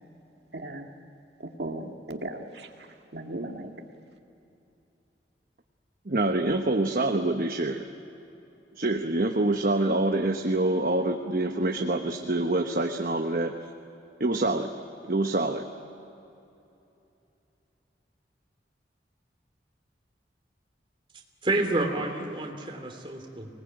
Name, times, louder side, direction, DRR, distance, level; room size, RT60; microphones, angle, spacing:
voice 1, 0.5-0.9 1.4-3.7, right 1 dB, 70° right, 2 dB, 2.0 m, -37 dB
voice 2, 6.0-7.9 8.7-13.5 14.2-15.7, right 2 dB, 50° right, 4 dB, 1.1 m, -26 dB
voice 3, 21.4-23.5, right 2 dB, 30° right, 2 dB, 3.0 m, -29 dB
25.0 x 19.5 x 9.1 m, 2.8 s
head